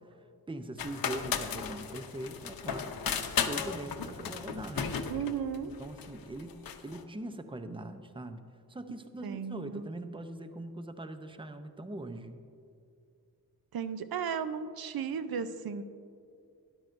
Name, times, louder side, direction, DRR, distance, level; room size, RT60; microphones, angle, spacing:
voice 1, 0.5-5.0 5.8-6.6 6.8-8.4 8.7-12.4, right 1 dB, 15° right, 8 dB, 0.6 m, -41 dB
sound 1, 0.8-7.0, left 7 dB, 65° left, 0.7 m, -35 dB
voice 2, 5.1-5.7 9.2-9.9 13.7-15.8, right 7 dB, 70° right, 11 dB, 0.6 m, -35 dB
13.0 x 10.5 x 2.6 m, 2.5 s
cardioid pair, 70°, 37 cm